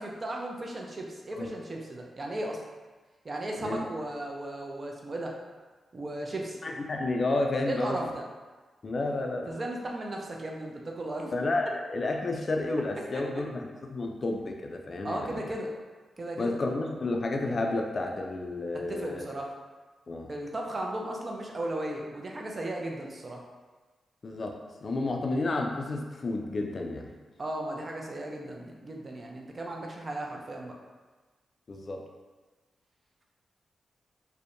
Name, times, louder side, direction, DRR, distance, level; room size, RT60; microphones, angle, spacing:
voice 1, 0.0-2.6 3.2-5.4 5.9-6.6 7.7-8.2 9.4-11.3 15.0-15.7 16.2-16.6 18.9-19.5 20.3-23.4 27.4-30.7, right 1 dB, 45° right, 0 dB, 0.4 m, -36 dB
voice 2, 3.6-3.9 6.6-8.1 8.8-9.5 11.3-15.5 16.4-19.2 20.1-20.3 24.2-27.1 31.7-32.1, left 2 dB, 55° left, 2 dB, 0.3 m, -31 dB
2.6 x 2.1 x 2.5 m, 1.3 s
supercardioid pair, 50°, 0 cm